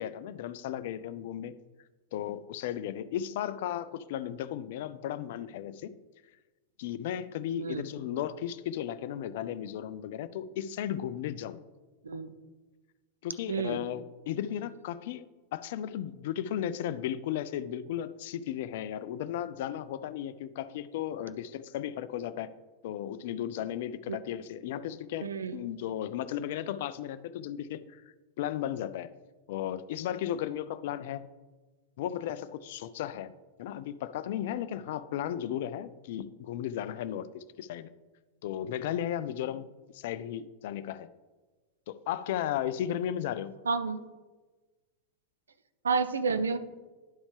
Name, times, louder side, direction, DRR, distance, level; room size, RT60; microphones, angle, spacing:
voice 1, 0.0-1.5 2.1-5.9 6.8-11.6 13.2-15.3 15.5-22.5 22.8-28.0 28.4-29.1 29.5-31.3 32.0-33.3 33.6-37.9 38.4-39.7 39.9-41.1 41.9-43.6, left 10 dB, 55° left, 15 dB, 0.3 m, -35 dB
voice 2, 13.5-13.8 24.1-24.2 25.2-25.6 43.7-44.0 45.8-46.6, right 5 dB, 70° right, 11 dB, 0.5 m, -30 dB
11.0 x 5.0 x 3.3 m, 1.2 s
figure-of-eight pair, 90°, 0 cm